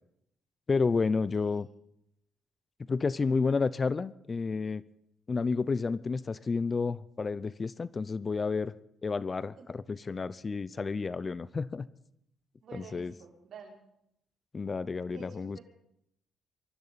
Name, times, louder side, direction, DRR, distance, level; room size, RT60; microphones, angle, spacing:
voice 1, 0.7-1.7 2.9-4.8 5.3-8.7 9.0-9.5 9.9-11.9 12.7-13.1 14.5-15.6, left 4 dB, 35° left, 18 dB, 0.5 m, -30 dB
voice 2, 1.4-1.7 9.6-9.7 12.6-13.8 15.1-15.6, right 5 dB, 65° right, -3 dB, 6.0 m, -50 dB
24.0 x 13.5 x 4.2 m, 0.77 s
cardioid pair, 90°, 0 cm